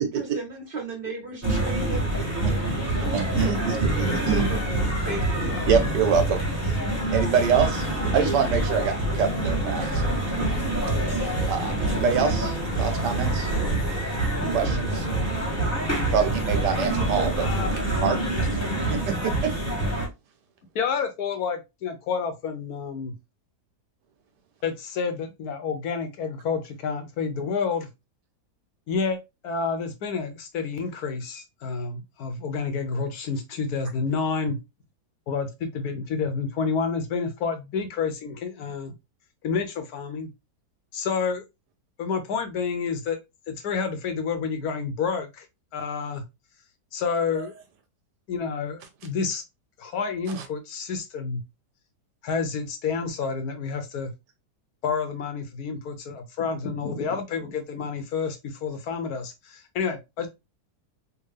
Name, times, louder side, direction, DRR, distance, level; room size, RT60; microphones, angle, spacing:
voice 1, 0.1-2.6 3.0-3.8 4.3-4.6 5.0-5.6, right 3 dB, 35° right, 1.2 m, -36 dB
sound 1, 1.4-20.1, right 1 dB, 10° left, 1.1 m, -26 dB
voice 2, 3.1-4.4 5.6-6.8 7.1-7.9 8.1-10.2 11.5-13.5 14.5-15.1 16.1-17.5 18.0-18.2 18.4-18.5 18.9-19.5 47.4-47.5 50.3-50.4, right 6 dB, 80° right, 1.4 m, -25 dB
sound 2, 9.8-17.8, right 1 dB, 60° right, 1.3 m, -37 dB
voice 3, 17.4-17.7 20.7-23.1 24.6-27.9 28.9-29.2 29.4-34.6 35.3-38.9 39.4-40.3 40.9-41.4 42.0-43.2 43.5-45.5 45.7-46.2 46.9-47.5 48.3-49.4 49.8-51.4 52.2-54.1 54.8-60.3, left 5 dB, 70° left, 1.2 m, -29 dB
3.6 x 2.5 x 3.2 m
omnidirectional pair, 1.8 m